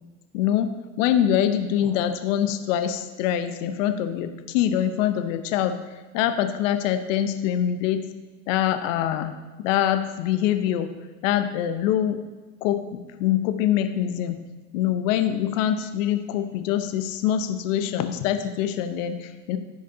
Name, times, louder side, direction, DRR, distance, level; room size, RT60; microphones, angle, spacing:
voice 1, 0.3-0.7 1.0-8.0 8.5-9.3 9.6-10.9 11.2-12.2 12.6-14.4 14.7-19.6, left 10 dB, 70° left, 8 dB, 0.9 m, -24 dB
14.5 x 5.0 x 2.8 m, 1.2 s
hypercardioid pair, 85°, 40 cm